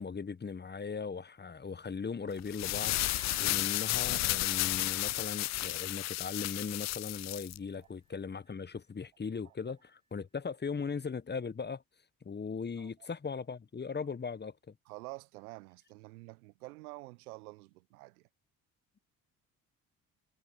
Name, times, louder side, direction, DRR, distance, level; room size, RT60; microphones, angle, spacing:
voice 1, 0.0-11.8 12.2-14.7, left 5 dB, 25° left, 1.4 m, -39 dB
sound 1, 2.4-7.6, left 18 dB, 40° left, 0.4 m, -32 dB
Bell, 2.8-8.2, right 2 dB, 40° right, 2.9 m, -56 dB
voice 2, 14.9-18.3, right 22 dB, 75° right, 1.0 m, -48 dB
figure-of-eight pair, 50°, 44 cm